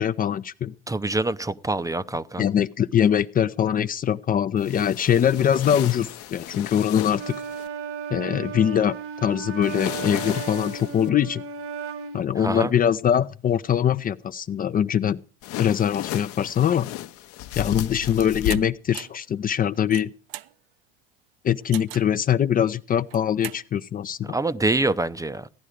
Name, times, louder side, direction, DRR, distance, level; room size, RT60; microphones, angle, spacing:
voice 1, 0.0-0.7 2.4-7.4 8.1-11.4 12.1-15.2 15.6-16.9 17.6-20.1 21.4-24.3, left 9 dB, 30° left, 0.6 m, -23 dB
voice 2, 0.9-2.4 12.4-12.7 24.2-25.5, right 2 dB, 10° right, 0.7 m, -25 dB
sound 1, 4.6-7.7 9.6-11.1 15.4-18.5, left 13 dB, 50° left, 1.0 m, -34 dB
Wind instrument woodwind instrument, 7.1-12.3, right 6 dB, 45° right, 1.4 m, -35 dB
sound 2, 18.5-18.6 18.9-19.2 19.7-20.5 21.7-22.1 23.0-23.6, right 15 dB, 70° right, 0.8 m, -37 dB
16.5 x 11.0 x 5.0 m
hypercardioid pair, 80°, 30 cm